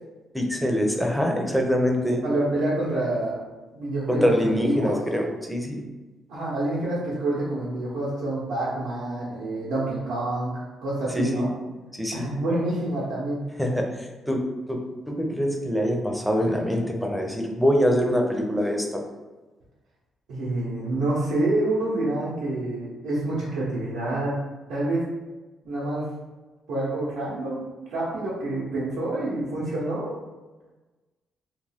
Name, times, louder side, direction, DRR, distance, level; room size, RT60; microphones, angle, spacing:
voice 1, 0.3-2.2 4.1-5.8 11.1-11.4 12.0-12.3 13.6-19.0, equal, ahead, 1 dB, 0.5 m, -24 dB
voice 2, 2.2-3.4 3.7-5.0 6.3-11.5 12.1-13.5 20.3-24.4 24.7-25.1 25.6-26.1 26.7-30.2, right 2 dB, 85° right, -8 dB, 0.7 m, -27 dB
2.4 x 2.2 x 3.3 m, 1.2 s
cardioid pair, 90°, 0 cm